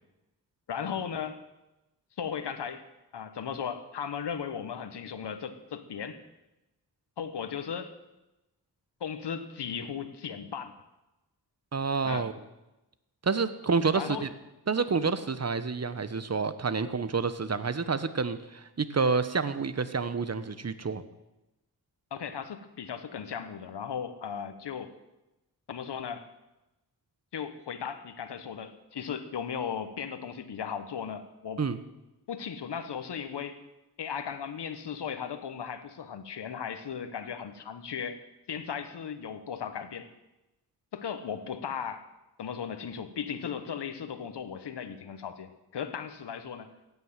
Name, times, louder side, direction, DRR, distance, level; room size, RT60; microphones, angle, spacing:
voice 1, 0.7-1.4 2.2-2.8 3.1-6.2 7.2-7.9 9.0-10.7 12.0-12.3 13.9-14.3 22.1-24.9 25.7-26.3 27.3-31.6 32.3-33.6 34.0-38.2 38.5-40.1 40.9-42.1 42.4-46.7, left 7 dB, 90° left, 10 dB, 1.3 m, -36 dB
voice 2, 11.7-12.3 13.2-14.3 14.7-21.0 31.6-31.8, right 4 dB, 40° right, 13 dB, 1.1 m, -29 dB
16.0 x 9.5 x 7.5 m, 0.98 s
cardioid pair, 60°, 40 cm